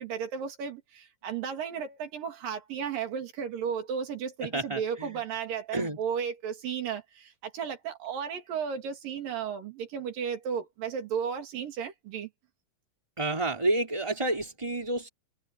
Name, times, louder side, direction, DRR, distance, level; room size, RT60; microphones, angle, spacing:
voice 1, 0.0-12.3, right 7 dB, 85° right, 4.2 m, -34 dB
voice 2, 4.4-5.2 5.7-6.0 13.2-15.1, right 2 dB, 10° right, 4.4 m, -30 dB
omnidirectional pair, 3.8 m